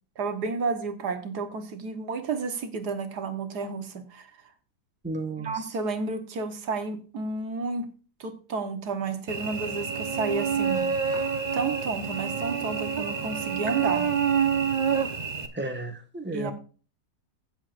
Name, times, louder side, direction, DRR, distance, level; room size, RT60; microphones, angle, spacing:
voice 1, 0.2-4.3 5.4-7.9 8.2-10.9 11.5-14.1 16.3-16.5, right 4 dB, 75° right, 7 dB, 1.8 m, -31 dB
voice 2, 5.0-5.5 15.5-16.5, right 2 dB, 5° right, 4 dB, 1.4 m, -32 dB
Cricket / Buzz, 9.3-15.5, right 6 dB, 30° right, 1.0 m, -27 dB
16.0 x 7.6 x 2.5 m, 0.37 s
omnidirectional pair, 1.7 m